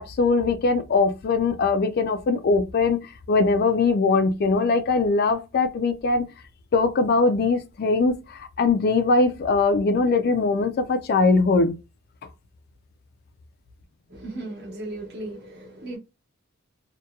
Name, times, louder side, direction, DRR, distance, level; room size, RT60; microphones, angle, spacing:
voice 1, 0.0-3.0 3.3-6.3 6.7-11.8, left 3 dB, 45° left, 0.4 m, -21 dB
voice 2, 14.1-16.0, right 2 dB, 50° right, 1.0 m, -36 dB
2.8 x 2.2 x 2.2 m
head